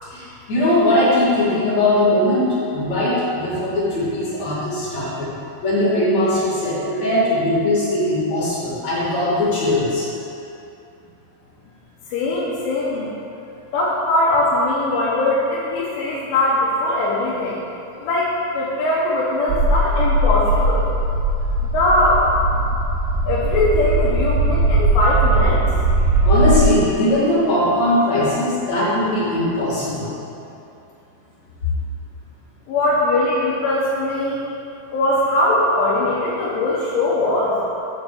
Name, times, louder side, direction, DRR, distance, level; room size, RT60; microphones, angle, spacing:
voice 1, 0.0-5.3 5.6-10.1 26.2-30.1, left 1 dB, 45° left, -9 dB, 2.6 m, -20 dB
voice 2, 12.1-13.1 13.7-17.6 18.0-20.8 21.7-22.2 23.2-25.7 32.7-34.5 34.9-37.6, left 2 dB, 85° left, -8 dB, 3.5 m, -20 dB
sound 1, 19.5-26.7, right 2 dB, 85° right, 2.4 m, -19 dB
8.1 x 4.8 x 6.6 m, 2.8 s
omnidirectional pair, 5.4 m